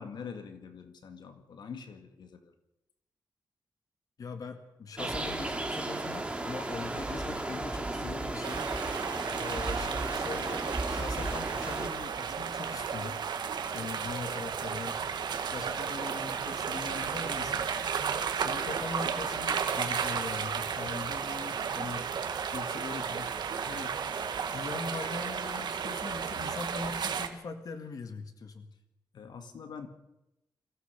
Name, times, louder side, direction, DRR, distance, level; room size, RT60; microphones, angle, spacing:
voice 1, 0.0-2.5 29.1-29.9, left 6 dB, 75° left, 7 dB, 2.0 m, -44 dB
voice 2, 4.2-8.7 9.4-13.2 13.7-15.0 15.5-17.7 18.3-22.1 22.5-23.3 23.6-23.9 24.5-28.7, left 4 dB, 55° left, 7 dB, 1.9 m, -41 dB
sound 1, 5.0-11.9, right 2 dB, 15° right, 2.7 m, -35 dB
sound 2, 8.4-27.3, right 6 dB, 70° right, 1.8 m, -33 dB
24.5 x 15.5 x 6.9 m, 0.91 s
wide cardioid pair, 145°, 8 cm